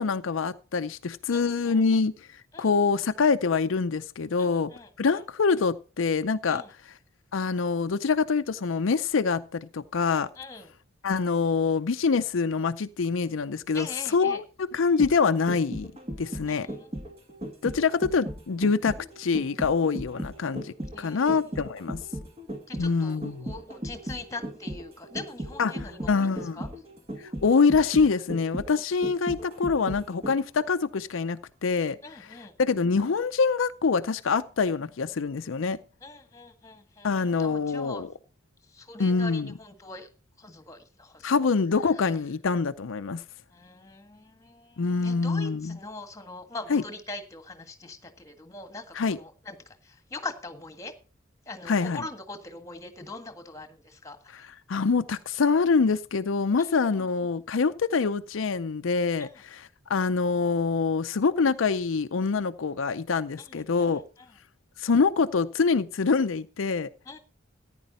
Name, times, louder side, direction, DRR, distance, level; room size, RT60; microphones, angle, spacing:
voice 1, 0.0-2.1 2.6-4.7 5.0-6.9 7.3-10.3 11.0-15.9 16.2-16.7 17.6-22.0 22.8-23.5 25.6-26.6 27.4-35.8 37.0-38.1 39.0-39.5 41.2-43.2 44.8-45.8 46.7-46.8 48.9-49.2 51.7-52.0 54.3-64.0 64.8-66.9, left 4 dB, 75° left, 0.5 m, -25 dB
voice 2, 1.3-1.8 2.5-2.7 4.4-5.2 6.5-6.7 10.4-10.7 13.7-14.4 16.5-16.9 20.9-21.5 22.7-26.7 32.0-32.5 36.0-38.0 38.7-40.1 40.4-41.5 43.5-49.6 49.8-50.9 51.4-54.5 56.9-57.1 59.2-59.3 63.4-64.0 67.0-67.2, left 3 dB, 15° left, 1.7 m, -42 dB
sound 1, 14.7-30.6 31.0-31.1, right 1 dB, 30° right, 2.2 m, -37 dB
14.5 x 10.0 x 4.2 m
head